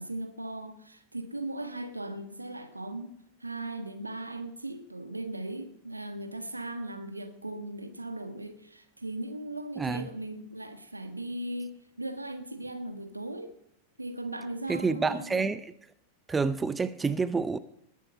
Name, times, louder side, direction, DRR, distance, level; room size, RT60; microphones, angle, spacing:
voice 1, 0.0-13.5 14.0-15.5, right 1 dB, 85° right, 1.4 m, -38 dB
voice 2, 9.8-10.1 14.7-15.6 16.3-17.6, right 4 dB, 15° right, 0.5 m, -28 dB
19.5 x 8.4 x 5.6 m
figure-of-eight pair, 90°, 0 cm